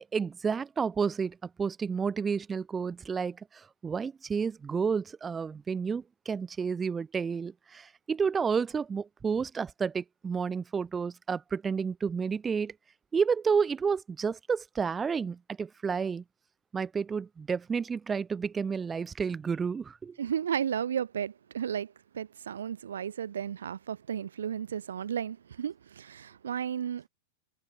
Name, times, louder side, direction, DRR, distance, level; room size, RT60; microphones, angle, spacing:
voice 1, 0.0-12.7 13.1-16.2 16.7-20.2, right 6 dB, 20° right, 7.9 m, -31 dB
voice 2, 20.2-27.1, right 8 dB, 70° right, 3.3 m, -34 dB
figure-of-eight pair, 95°, 0 cm